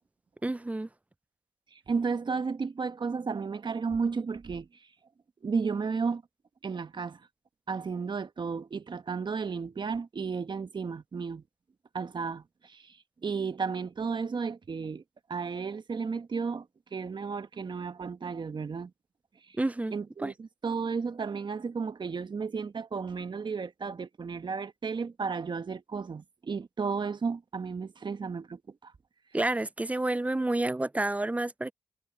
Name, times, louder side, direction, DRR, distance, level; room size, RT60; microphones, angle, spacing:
voice 1, 0.4-0.9 19.6-19.9 20.2-20.3 29.3-31.7, right 2 dB, 15° right, 0.5 m, -29 dB
voice 2, 1.9-4.7 5.4-6.2 6.6-7.2 7.7-11.4 11.9-13.0 13.2-15.0 15.3-16.6 16.9-18.9 19.9-28.9, right 5 dB, 50° right, 1.3 m, -33 dB
supercardioid pair, 45°, 10 cm